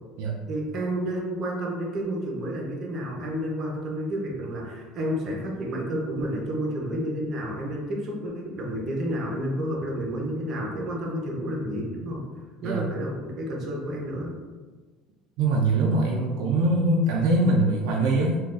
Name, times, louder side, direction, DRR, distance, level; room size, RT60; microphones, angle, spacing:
voice 1, 0.5-12.3 12.6-14.4, equal, 40° right, -1 dB, 0.7 m, -30 dB
voice 2, 15.4-18.4, right 2 dB, 75° right, -2 dB, 0.4 m, -22 dB
3.8 x 2.3 x 2.4 m, 1.4 s
cardioid pair, 135°, 0 cm